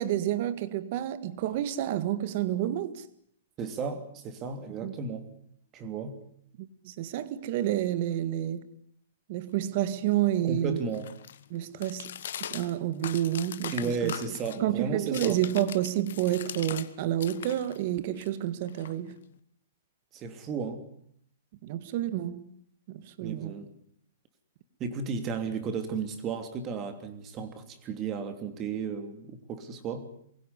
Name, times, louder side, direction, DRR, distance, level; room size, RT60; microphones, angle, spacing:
voice 1, 0.0-3.0 4.8-4.9 6.6-8.7 9.3-10.8 11.5-12.1 12.5-14.1 14.6-19.1 21.6-22.4 22.9-23.5, right 12 dB, 45° right, 1.7 m, -29 dB
voice 2, 3.6-5.2 5.7-6.2 10.4-11.1 13.7-15.4 20.1-20.9 23.2-23.7 24.8-30.1, right 5 dB, 25° right, 3.1 m, -34 dB
sound 1, 9.5-16.9 17.2-19.4, left 9 dB, 70° left, 1.4 m, -42 dB
23.0 x 16.5 x 9.8 m
hypercardioid pair, 150°, 0 cm